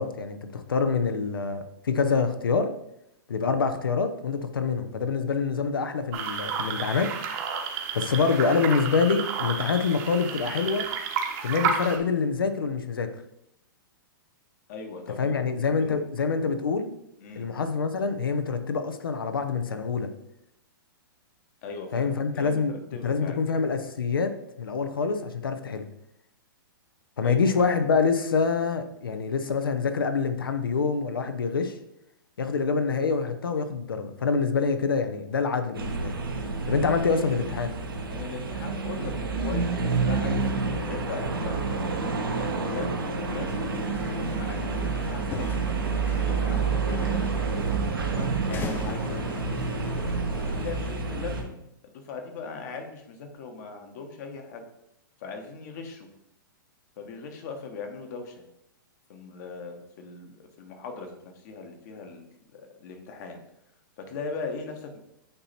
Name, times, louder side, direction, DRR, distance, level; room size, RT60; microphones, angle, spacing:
voice 1, 0.0-2.7 3.3-7.1 7.9-10.9 11.4-13.1 15.2-16.9 17.4-20.1 21.9-22.7 23.0-24.3 24.6-25.9 27.2-31.7 32.4-36.2 36.7-37.7, left 5 dB, 80° left, 9 dB, 0.7 m, -26 dB
sound 1, 6.1-12.0, right 6 dB, 45° right, 1.0 m, -31 dB
voice 2, 14.7-15.9 17.2-17.5 21.6-23.4 27.2-27.5 38.1-41.7 42.3-45.7 46.1-47.5 48.0-49.9 50.6-51.5 51.8-54.6 55.2-56.1 57.0-58.4 59.1-62.3 62.5-63.4 64.0-65.0, left 4 dB, 50° left, 5 dB, 1.3 m, -39 dB
sound 2, 35.7-51.4, right 4 dB, 85° right, 1.2 m, -29 dB
sound 3, 43.5-51.0, left 5 dB, 20° left, 0.5 m, -40 dB
8.7 x 2.9 x 4.3 m, 0.80 s
hypercardioid pair, 120°, 11 cm